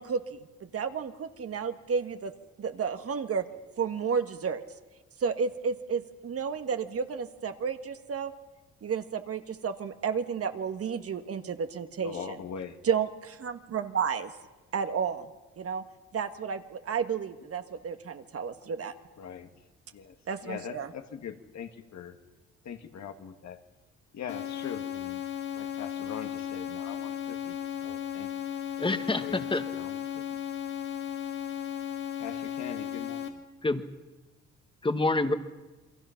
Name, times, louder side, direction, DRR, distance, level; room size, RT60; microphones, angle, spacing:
voice 1, 0.0-2.3 2.6-3.4 3.8-4.6 5.2-8.3 8.8-12.4 12.8-14.3 14.7-15.3 15.6-15.8 16.1-18.9 20.3-20.9, right 6 dB, 50° right, 8 dB, 1.5 m, -32 dB
voice 2, 12.0-12.8 19.2-19.5 19.9-20.2 20.4-22.2 22.6-23.6 24.1-25.2 25.5-28.5 29.1-29.4 29.7-30.4 32.2-33.4, left 7 dB, 65° left, 7 dB, 1.8 m, -42 dB
sound 1, 24.3-33.3, left 9 dB, 80° left, 2.6 m, -35 dB
voice 3, 28.8-29.6 33.6-33.8 34.8-35.3, left 2 dB, 15° left, 9 dB, 1.6 m, -27 dB
28.5 x 23.0 x 5.9 m, 1.2 s
cardioid pair, 90°, 30 cm